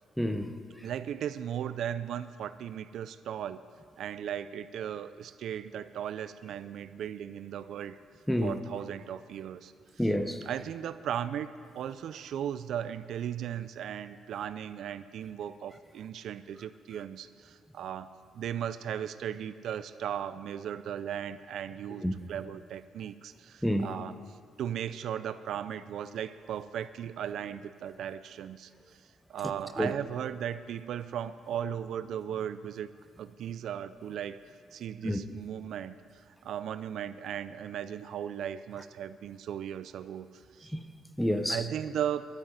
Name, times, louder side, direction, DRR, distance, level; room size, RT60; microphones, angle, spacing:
voice 1, 0.2-0.5 8.3-8.6 10.0-10.4 22.0-22.1 23.6-23.9 29.8-29.9 35.0-35.2 40.7-40.9 41.2-41.6, equal, 5° left, 0.9 m, -28 dB
voice 2, 0.8-3.6 4.0-8.0 8.4-9.7 10.4-11.5 11.8-22.0 22.3-24.1 24.6-29.0 29.3-32.9 33.2-34.4 34.7-40.7 41.5-42.2, right 9 dB, 70° right, 0.4 m, -37 dB
11.5 x 9.0 x 9.4 m
cardioid pair, 90°, 0 cm